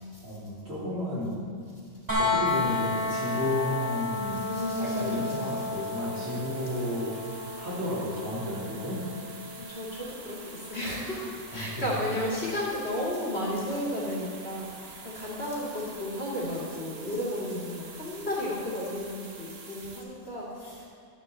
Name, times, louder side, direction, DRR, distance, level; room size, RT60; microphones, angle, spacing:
voice 1, 0.2-1.4 2.2-4.5 4.8-7.2 7.6-9.0 11.5-11.9, left 1 dB, 65° right, -8 dB, 3.3 m, -32 dB
sound 1, 2.1-13.9 15.8-15.9, left 3 dB, 30° right, 2.1 m, -34 dB
sound 2, 2.4-20.0, right 4 dB, 50° right, 1.1 m, -46 dB
voice 2, 4.4-5.4 9.6-20.8, left 1 dB, 45° left, -6 dB, 2.5 m, -33 dB
11.5 x 10.5 x 3.3 m, 2.2 s
omnidirectional pair, 1.5 m